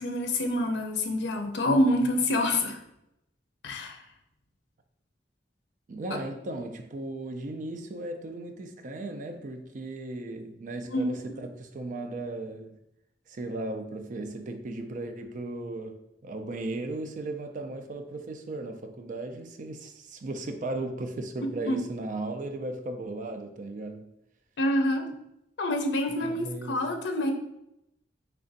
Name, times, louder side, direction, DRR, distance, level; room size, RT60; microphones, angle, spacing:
voice 1, 0.0-2.8 3.6-4.0 10.9-11.4 21.6-21.8 24.6-25.1 25.6-27.3, left 1 dB, 80° left, 0.5 m, -27 dB
voice 2, 5.9-12.8 13.3-24.1 26.1-26.9, right 2 dB, 45° right, 0.4 m, -36 dB
3.3 x 2.5 x 3.9 m
head